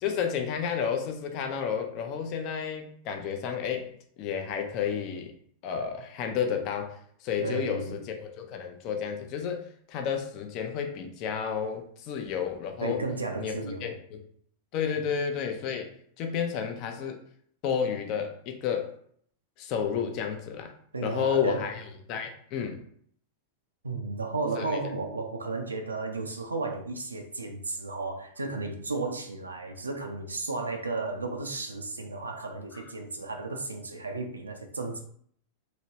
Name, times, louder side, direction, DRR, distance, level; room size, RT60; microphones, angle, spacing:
voice 1, 0.0-5.3 5.6-13.0 13.4-13.5 13.8-14.2 14.7-17.2 17.6-18.9 19.6-20.7 21.0-21.8 22.1-22.8 24.6-24.8, left 7 dB, 40° left, 5 dB, 0.5 m, -31 dB
voice 2, 7.4-8.0 12.8-13.9 14.9-15.1 20.9-21.7 23.8-35.0, right 3 dB, 75° right, 4 dB, 0.4 m, -34 dB
3.0 x 2.8 x 2.8 m, 0.62 s
figure-of-eight pair, 90°, 0 cm